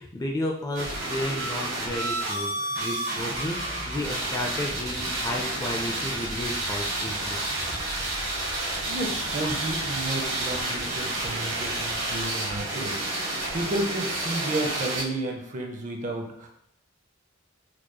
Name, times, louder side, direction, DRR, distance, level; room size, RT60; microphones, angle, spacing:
voice 1, 0.0-7.4, left 1 dB, 15° left, 0 dB, 0.4 m, -32 dB
sound 1, 0.7-15.0, right 2 dB, 60° right, 1.1 m, -30 dB
voice 2, 8.8-13.0 13.5-16.5, right 2 dB, 35° right, 2 dB, 0.6 m, -32 dB
4.6 x 3.0 x 2.2 m, 0.75 s
head